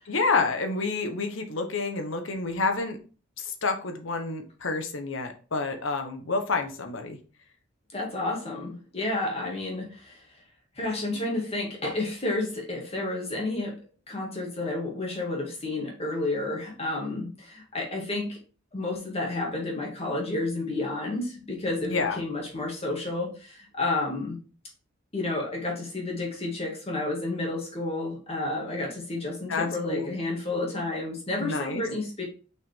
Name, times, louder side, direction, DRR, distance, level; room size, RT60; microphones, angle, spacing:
voice 1, 0.1-3.0 3.4-7.2 21.7-22.2 29.5-30.1 31.4-31.8, left 3 dB, 80° left, 5 dB, 1.1 m, -29 dB
voice 2, 7.9-10.2 10.8-13.8 14.1-18.4 18.7-24.4 25.1-32.2, left 2 dB, 30° left, -2 dB, 2.2 m, -31 dB
5.9 x 4.6 x 3.7 m, 0.37 s
head